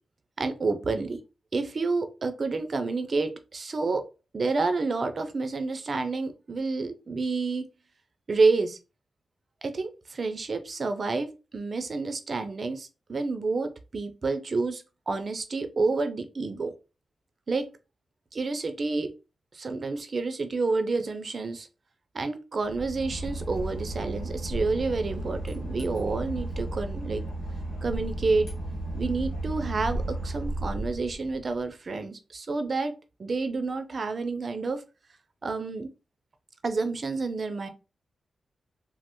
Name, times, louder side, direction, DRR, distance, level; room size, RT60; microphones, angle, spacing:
voice 1, 0.4-1.2 1.5-4.1 4.3-7.7 8.3-8.8 9.6-16.7 17.5-17.7 18.3-19.1 19.5-21.7 22.1-27.2 27.8-28.5 28.9-32.9 33.2-34.8 35.4-35.9 36.6-37.7, right 3 dB, 55° right, 8 dB, 0.5 m, -29 dB
Boat Water vehicle / Engine, 22.6-31.6, right 1 dB, 75° left, 0.9 m, -34 dB
3.0 x 2.0 x 3.0 m, 0.29 s
supercardioid pair, 45°, 0 cm